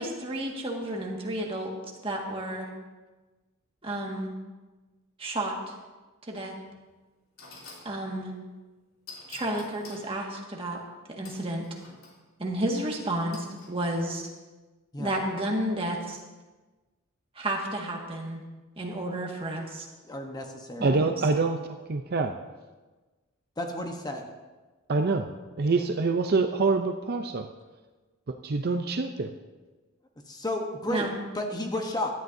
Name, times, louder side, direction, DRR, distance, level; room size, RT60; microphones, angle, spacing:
voice 1, 0.0-1.7 2.0-2.7 3.8-4.3 5.2-5.5 6.2-6.5 7.8-8.3 9.3-10.8 11.1-11.6 12.4-14.2 15.0-16.2 17.3-18.4 18.8-19.8 20.8-20.9 30.9-31.2, right 1 dB, 25° right, -1 dB, 1.8 m, -31 dB
sound 1, 6.7-6.8 7.4-7.9 9.1-10.1 11.2-12.2 13.3-13.7, left 3 dB, 90° left, 3.0 m, -47 dB
voice 2, 20.1-20.9 23.6-24.3 30.3-31.1 31.3-32.1, left 1 dB, 20° left, 3 dB, 1.0 m, -32 dB
voice 3, 20.8-21.6 21.9-22.3 24.9-25.3 25.6-27.5 28.4-29.3, right 3 dB, 50° right, 6 dB, 0.6 m, -25 dB
17.0 x 11.5 x 2.7 m, 1.2 s
head